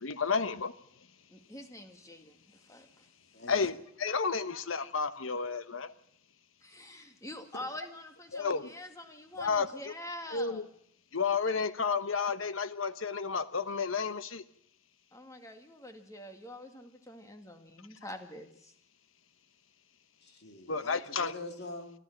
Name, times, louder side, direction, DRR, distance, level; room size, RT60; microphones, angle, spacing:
voice 1, 0.0-0.7 3.5-3.7 4.0-5.9 8.3-8.6 9.4-9.7 10.3-10.6 11.1-14.4 20.7-21.3, left 5 dB, 75° left, 13 dB, 1.1 m, -31 dB
voice 2, 1.3-3.1 3.6-3.7 6.6-10.7 15.1-18.7, left 1 dB, 15° left, 6 dB, 2.2 m, -46 dB
voice 3, 20.2-21.9, left 2 dB, 55° left, 5 dB, 2.9 m, -44 dB
25.5 x 13.5 x 7.4 m, 0.68 s
head